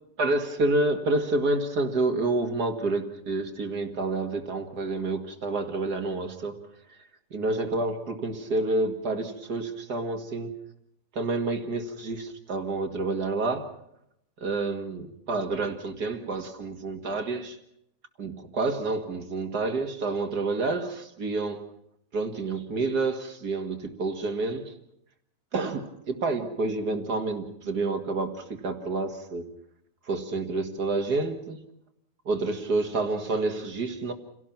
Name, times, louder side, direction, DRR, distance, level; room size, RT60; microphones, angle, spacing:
voice 1, 0.2-10.6 11.1-13.7 14.4-17.6 18.2-21.7 22.1-24.7 25.5-29.5 30.0-31.6 32.3-34.1, right 3 dB, 85° right, 2.6 m, -29 dB
29.0 x 17.5 x 5.9 m
omnidirectional pair, 1.7 m